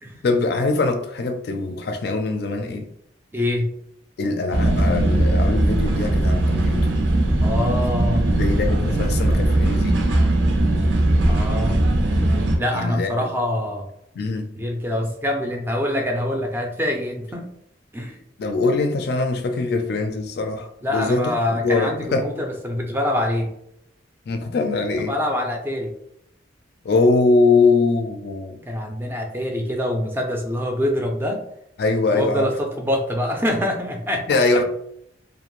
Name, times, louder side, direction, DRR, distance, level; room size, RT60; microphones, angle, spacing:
voice 1, 0.2-2.9 4.2-6.9 8.3-10.0 12.7-13.1 14.2-14.5 18.4-22.3 24.3-25.1 26.8-28.6 31.8-32.5 34.3-34.6, left 3 dB, 60° left, 0.4 m, -22 dB
voice 2, 3.3-3.7 7.4-8.3 11.3-11.9 12.6-13.9 14.6-17.5 17.9-18.2 20.8-23.5 25.1-25.9 28.7-31.4 32.1-34.3, left 1 dB, 10° right, 0.4 m, -25 dB
sound 1, 4.5-12.6, right 1 dB, 80° right, 0.6 m, -19 dB
2.5 x 2.1 x 2.9 m
head